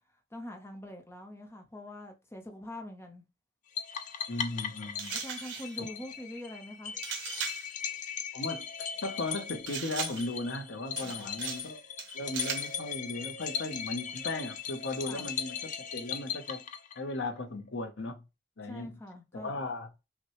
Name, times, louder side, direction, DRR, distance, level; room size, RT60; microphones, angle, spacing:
voice 1, 0.3-3.2 5.1-7.0 11.0-11.4 15.1-15.3 18.6-19.6, left 1 dB, 15° left, 0.8 m, -44 dB
sound 1, 3.8-17.2, left 8 dB, 40° left, 0.5 m, -38 dB
voice 2, 4.3-5.2 5.8-5.9 8.3-8.7 9.0-11.8 12.1-16.6 17.0-18.2 18.6-19.0 19.3-19.9, left 2 dB, 70° left, 0.8 m, -36 dB
sound 2, 5.0-5.8 7.0-7.7 9.7-10.4 11.0-11.7 12.0-12.8, right 7 dB, 80° right, 0.9 m, -38 dB
5.8 x 2.2 x 3.0 m
head